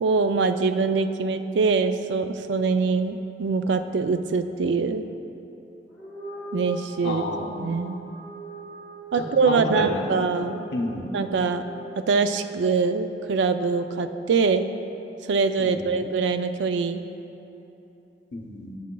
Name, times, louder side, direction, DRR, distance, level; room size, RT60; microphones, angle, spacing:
voice 1, 0.0-5.0 6.5-7.2 7.6-8.0 9.1-10.6 11.1-11.6 12.0-14.6 15.2-17.0, right 4 dB, 90° right, 9 dB, 0.4 m, -23 dB
sound 1, 5.9-12.5, right 1 dB, ahead, 1.4 m, -41 dB
voice 2, 7.0-7.7 9.1-10.3 10.7-11.1 15.6-16.0 18.3-18.8, left 2 dB, 75° left, 3 dB, 0.7 m, -30 dB
11.0 x 7.4 x 2.3 m, 2.9 s
head